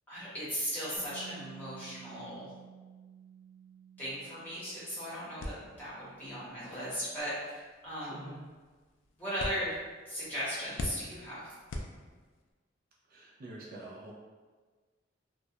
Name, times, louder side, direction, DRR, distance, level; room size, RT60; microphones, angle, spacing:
voice 1, 0.1-2.5 4.0-5.5 5.8-8.4 9.2-9.8 10.1-11.5, equal, 10° left, -11 dB, 0.9 m, -37 dB
Bass guitar, 1.0-7.2, right 8 dB, 85° right, 0.9 m, -54 dB
sound 1, 5.4-12.5, left 1 dB, 80° left, 0.3 m, -45 dB
voice 2, 8.0-8.4 13.1-14.1, right 2 dB, 50° right, -3 dB, 0.3 m, -47 dB
2.2 x 2.1 x 2.7 m, 1.4 s
head